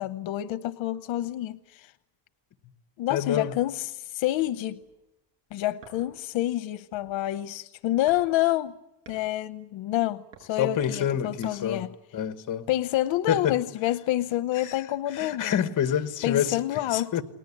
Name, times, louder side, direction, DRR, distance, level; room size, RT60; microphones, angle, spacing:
voice 1, 0.0-1.9 3.0-4.8 5.5-8.7 9.1-11.9 12.7-15.6 16.2-17.1, left 14 dB, 80° left, 0.9 m, -28 dB
voice 2, 3.1-3.5 10.6-11.8 12.1-12.7 13.3-13.6 14.6-14.7 15.1-16.6 16.9-17.2, left 9 dB, 45° left, 1.6 m, -27 dB
sound 1, 3.3-3.8 4.4-5.0 5.8-6.4 6.7-7.4 8.1-8.3 8.6-9.3 10.0-11.6 12.1-12.2, right 5 dB, 75° right, 7.8 m, -53 dB
30.0 x 20.5 x 8.6 m
cardioid pair, 165°, 45 cm